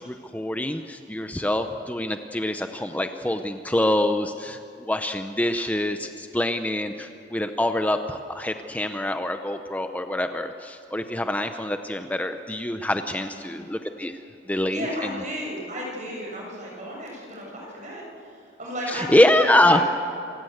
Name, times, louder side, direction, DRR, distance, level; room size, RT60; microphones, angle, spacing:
voice 1, 0.0-4.6 4.9-14.2 14.5-15.1 18.9-19.8, left 1 dB, 10° left, 7 dB, 0.7 m, -25 dB
voice 2, 14.7-18.0 18.6-19.8, equal, 45° right, -2 dB, 6.6 m, -33 dB
27.0 x 15.5 x 8.0 m, 2.8 s
head